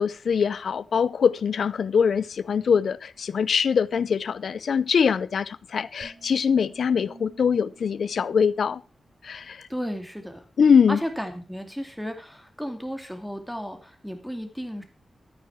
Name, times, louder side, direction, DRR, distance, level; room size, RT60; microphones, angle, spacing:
voice 1, 0.0-8.8 9.2-9.7 10.6-11.0, left 6 dB, 75° left, 0.6 m, -23 dB
sound 1, 6.0-9.3, right 3 dB, 80° right, 4.1 m, -53 dB
voice 2, 9.7-10.4 10.9-14.8, equal, ahead, 2.5 m, -34 dB
13.5 x 9.7 x 4.6 m
wide cardioid pair, 135°, 0 cm